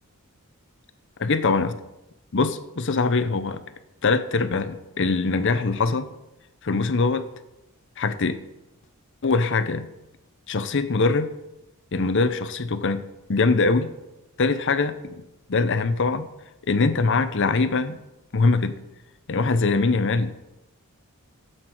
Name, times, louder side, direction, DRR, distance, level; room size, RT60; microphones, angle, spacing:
voice 1, 1.2-1.8 2.3-3.6 4.0-6.1 6.6-7.2 8.0-8.4 9.2-9.9 10.5-11.3 11.9-13.0 13.3-13.9 14.4-15.2 15.5-16.3 16.7-18.0 18.3-18.8 19.3-20.3, left 3 dB, 55° left, 11 dB, 0.7 m, -22 dB
13.0 x 8.0 x 4.5 m, 0.95 s
head